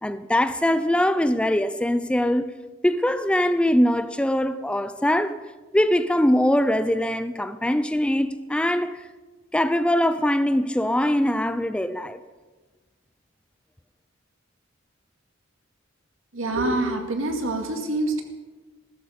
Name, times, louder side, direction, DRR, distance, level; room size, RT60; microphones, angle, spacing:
voice 1, 0.0-2.5 2.8-5.4 5.7-9.0 9.5-12.2, left 1 dB, 5° left, 0.4 m, -22 dB
voice 2, 16.3-18.2, right 2 dB, 85° right, 2.0 m, -26 dB
15.5 x 13.5 x 5.1 m
head